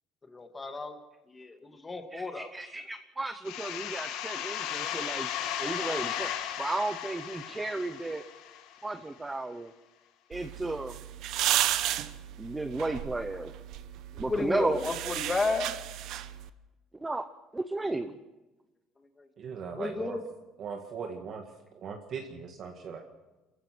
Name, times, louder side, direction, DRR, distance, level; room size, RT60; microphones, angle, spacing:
voice 1, 0.3-1.0 1.3-2.5 4.8-5.0 5.8-6.0 14.1-15.8 19.2-19.3 19.8-20.2, left 3 dB, 15° left, 6 dB, 1.9 m, -33 dB
voice 2, 2.1-5.3 5.6-6.3 6.6-8.2 8.8-9.7 10.3-11.0 12.4-13.5 14.2-14.8 17.0-17.3 17.5-18.2, right 2 dB, 10° right, 9 dB, 0.7 m, -33 dB
sound 1, 3.5-9.0, left 10 dB, 75° left, 2.5 m, -35 dB
sound 2, 10.3-16.5, right 12 dB, 60° right, 1.0 m, -33 dB
voice 3, 19.4-20.2 20.6-21.4 21.8-23.0, right 6 dB, 40° right, 3 dB, 1.9 m, -39 dB
28.5 x 15.0 x 6.1 m, 1.1 s
cardioid pair, 165°, 0 cm